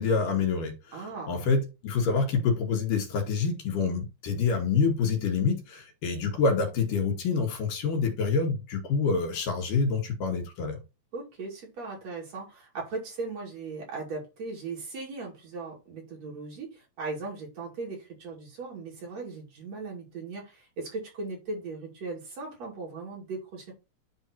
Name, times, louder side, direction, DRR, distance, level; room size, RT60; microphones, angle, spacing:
voice 1, 0.0-10.8, left 5 dB, 70° left, 2.9 m, -27 dB
voice 2, 0.9-1.5 11.1-23.7, right 3 dB, 50° right, 3.6 m, -38 dB
10.5 x 3.6 x 4.4 m
omnidirectional pair, 4.1 m